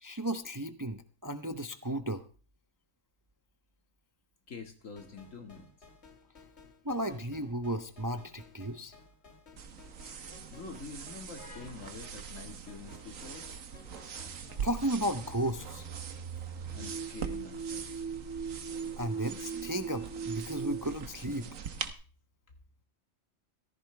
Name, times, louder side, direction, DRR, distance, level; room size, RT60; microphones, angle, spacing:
voice 1, 0.0-2.2 6.8-8.9 14.6-15.9 19.0-21.5, right 1 dB, 20° right, 9 dB, 0.7 m, -34 dB
voice 2, 4.5-5.7 10.5-13.5 14.4-14.5 16.7-18.0, left 4 dB, 75° left, 5 dB, 2.3 m, -46 dB
sound 1, 5.0-15.5, left 4 dB, 55° left, 1.9 m, -57 dB
sound 2, 9.6-21.9, right 6 dB, 80° right, 1.5 m, -43 dB
sound 3, 14.2-20.9, right 6 dB, 65° right, 2.8 m, -40 dB
16.0 x 14.0 x 3.3 m, 0.38 s
omnidirectional pair, 1.3 m